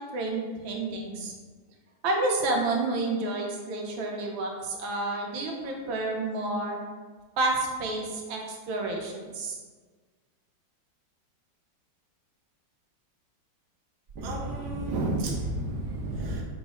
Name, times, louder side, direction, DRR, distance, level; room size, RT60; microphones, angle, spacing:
voice 1, 0.1-1.3 2.0-6.8 7.4-9.6, right 2 dB, 90° right, 1 dB, 1.5 m, -30 dB
voice 2, 14.2-16.4, right 2 dB, 55° right, -2 dB, 1.0 m, -31 dB
5.3 x 2.1 x 4.8 m, 1.4 s
omnidirectional pair, 2.1 m